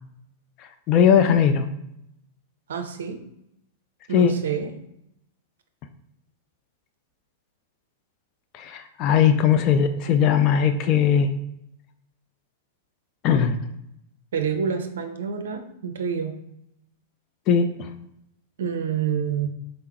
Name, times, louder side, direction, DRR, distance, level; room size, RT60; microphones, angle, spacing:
voice 1, 0.9-1.6 4.1-4.3 8.5-11.3 13.2-13.6 17.5-17.9, left 8 dB, 35° left, 8 dB, 0.3 m, -19 dB
voice 2, 2.7-3.2 4.1-4.7 14.3-16.4 18.6-19.5, right 7 dB, 65° right, 7 dB, 0.4 m, -27 dB
3.9 x 3.7 x 2.8 m, 0.80 s
figure-of-eight pair, 95°, 0 cm